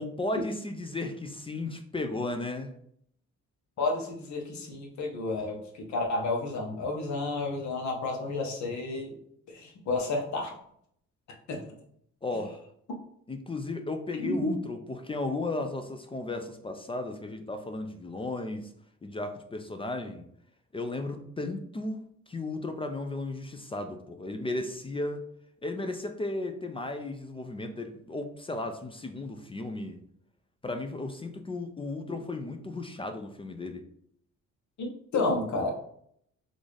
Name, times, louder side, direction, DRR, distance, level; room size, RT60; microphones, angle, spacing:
voice 1, 0.0-2.7 12.2-12.6 13.3-18.6 19.0-20.2 20.7-22.0 22.3-25.2 25.6-30.0 30.6-33.8, left 2 dB, 20° left, 6 dB, 0.4 m, -35 dB
voice 2, 3.8-9.2 9.5-10.6 11.5-11.6 14.2-14.5 34.8-35.7, left 2 dB, 65° left, 1 dB, 1.0 m, -31 dB
3.8 x 2.5 x 3.2 m, 0.67 s
cardioid pair, 90°, 30 cm